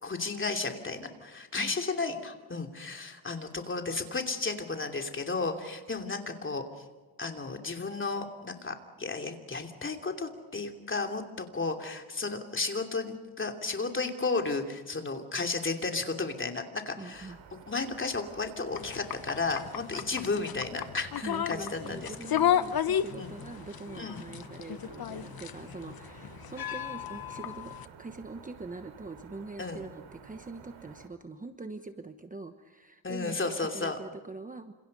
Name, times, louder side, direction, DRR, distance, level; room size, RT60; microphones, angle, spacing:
voice 1, 0.0-6.8 7.2-17.3 17.7-22.1 23.2-23.3 23.9-24.2 29.6-29.8 33.0-34.0, left 3 dB, 25° left, 4 dB, 2.9 m, -33 dB
voice 2, 17.0-17.4 21.2-27.7 28.0-34.7, right 3 dB, 15° right, 7 dB, 1.1 m, -43 dB
sound 1, 17.1-31.1, right 6 dB, 75° right, 3.3 m, -52 dB
sound 2, 18.7-27.9, left 9 dB, 50° left, 1.1 m, -33 dB
29.5 x 27.0 x 5.4 m, 1.3 s
cardioid pair, 140°, 47 cm